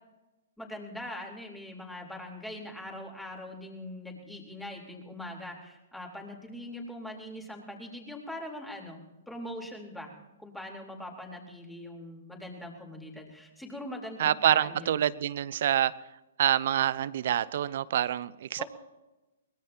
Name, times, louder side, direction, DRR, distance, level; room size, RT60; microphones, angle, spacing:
voice 1, 0.6-10.1 10.4-15.0 18.6-18.7, left 1 dB, 5° left, 0 dB, 3.9 m, -42 dB
voice 2, 14.2-15.9 16.4-18.6, right 11 dB, 55° right, 18 dB, 0.7 m, -26 dB
23.0 x 20.5 x 2.9 m, 1.0 s
hypercardioid pair, 120°, 0 cm